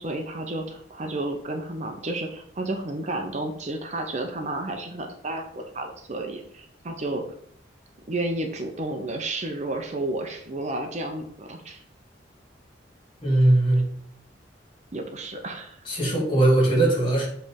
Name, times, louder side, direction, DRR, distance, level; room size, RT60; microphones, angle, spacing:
voice 1, 0.0-7.2 8.1-11.8 14.9-15.8, right 2 dB, 40° right, 4 dB, 0.7 m, -31 dB
voice 2, 13.2-13.9 15.8-17.3, right 1 dB, 30° left, -3 dB, 3.2 m, -20 dB
7.7 x 3.3 x 5.2 m, 0.64 s
head